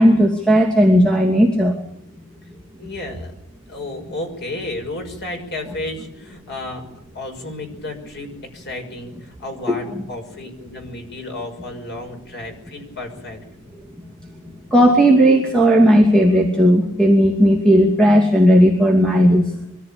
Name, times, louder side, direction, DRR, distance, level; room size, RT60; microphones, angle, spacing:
voice 1, 0.0-1.8 9.7-9.8 14.7-19.5, equal, 5° left, 0 dB, 2.6 m, -14 dB
voice 2, 2.8-3.3 3.7-6.8 7.1-13.4, left 2 dB, 50° left, 3 dB, 5.9 m, -32 dB
24.0 x 15.0 x 8.7 m, 0.81 s
head